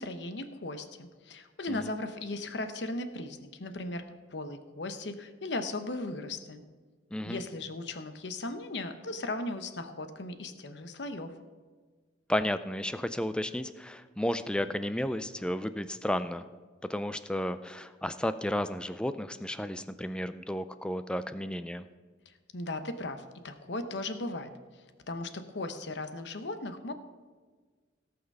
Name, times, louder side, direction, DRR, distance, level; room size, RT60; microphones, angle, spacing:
voice 1, 0.0-4.0 4.3-6.6 7.2-11.3 22.5-24.5 25.1-26.9, left 2 dB, 75° left, 9 dB, 0.9 m, -37 dB
voice 2, 7.1-7.4 12.3-16.5 16.9-21.8, left 1 dB, 5° left, 12 dB, 0.4 m, -33 dB
17.5 x 5.9 x 5.4 m, 1.5 s
head